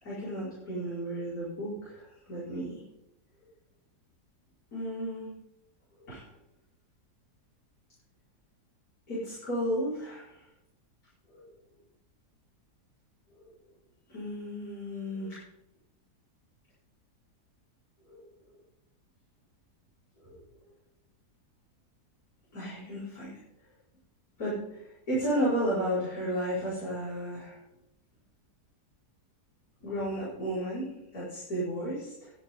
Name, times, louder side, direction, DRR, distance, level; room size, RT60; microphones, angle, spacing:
voice 1, 0.0-2.8 4.7-5.3 6.0-6.3 9.1-10.5 11.3-11.4 13.4-13.5 14.1-15.4 18.1-18.3 20.2-20.4 22.5-23.4 24.4-27.6 29.8-32.3, equal, 60° left, -10 dB, 5.8 m, -33 dB
21.0 x 7.7 x 3.9 m, 0.84 s
omnidirectional pair, 1.8 m